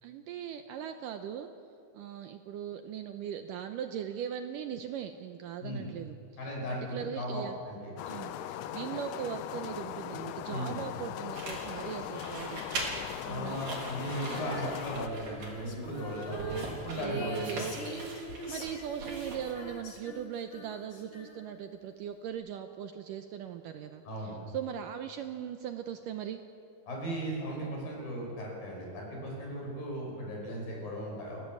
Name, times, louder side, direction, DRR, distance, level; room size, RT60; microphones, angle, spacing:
voice 1, 0.0-1.5 1.9-6.2 6.4-7.5 8.1-12.7 13.2-13.6 14.3-14.7 16.2-16.7 17.0-26.4, right 9 dB, 75° right, 7 dB, 2.1 m, -39 dB
voice 2, 5.6-5.9 6.4-7.9 10.5-10.8 13.2-16.6 16.8-17.6 24.0-24.3 26.9-31.4, equal, 65° left, -1 dB, 7.5 m, -37 dB
sound 1, 8.0-15.1, left 11 dB, 80° left, 1.9 m, -39 dB
sound 2, 11.3-19.7, right 3 dB, 55° right, 4.9 m, -42 dB
Female singing, 14.2-21.7, left 1 dB, 40° left, 2.5 m, -45 dB
30.0 x 15.0 x 7.7 m, 2.5 s
omnidirectional pair, 4.5 m